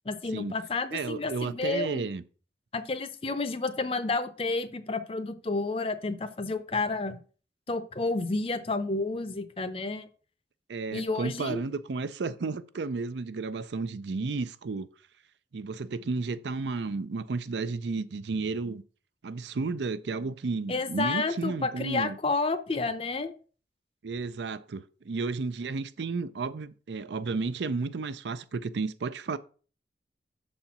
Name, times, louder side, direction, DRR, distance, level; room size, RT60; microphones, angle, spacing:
voice 1, 0.1-2.1 2.7-7.2 7.7-10.1 10.9-11.6 20.7-23.3, left 3 dB, 30° left, 0.6 m, -30 dB
voice 2, 0.9-2.2 10.7-14.9 15.5-18.8 19.2-22.2 24.0-29.4, right 4 dB, 80° right, 0.5 m, -32 dB
6.5 x 4.3 x 5.8 m
head